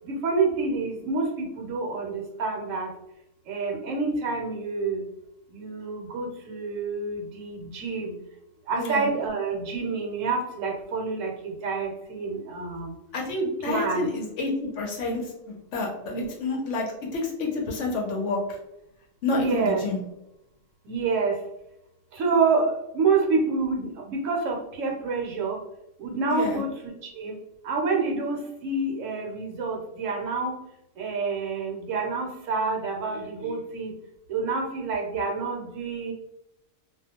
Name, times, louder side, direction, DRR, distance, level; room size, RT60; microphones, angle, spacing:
voice 1, 0.0-2.9 3.4-5.1 5.5-8.1 8.6-13.0 13.6-14.1 16.1-16.3 19.3-19.9 20.8-21.4 22.1-25.6 26.0-27.4 27.6-30.6 31.0-34.0 34.3-36.1, right 4 dB, 70° right, 0 dB, 1.0 m, -28 dB
voice 2, 8.8-9.1 13.1-15.2 15.5-16.8 17.1-18.6 19.2-20.0 26.3-26.6, left 3 dB, 65° left, 0 dB, 0.9 m, -28 dB
2.4 x 2.1 x 2.8 m, 0.85 s
omnidirectional pair, 1.4 m